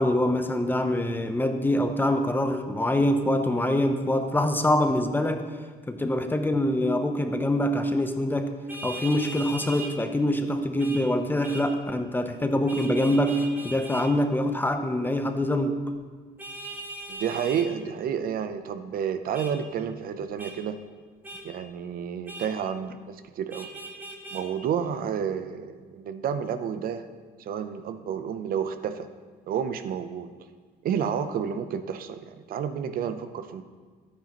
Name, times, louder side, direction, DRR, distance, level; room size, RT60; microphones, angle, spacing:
voice 1, 0.0-5.4 5.9-8.5 8.8-15.8, left 1 dB, 10° left, 7 dB, 0.7 m, -25 dB
Vehicle horn car horn honking, 8.7-9.9 10.8-11.0 11.4-11.7 12.7-14.1 16.4-17.7 19.3-19.5 20.4-20.5 21.2-21.4 22.3-22.5 23.5-24.4, right 2 dB, 10° right, 1.4 m, -39 dB
voice 2, 17.1-20.8 21.4-23.7 24.3-27.1 27.4-29.1 29.5-30.3 30.8-33.6, right 8 dB, 60° right, 10 dB, 0.7 m, -30 dB
12.0 x 9.4 x 3.0 m, 1.5 s
cardioid pair, 110°, 17 cm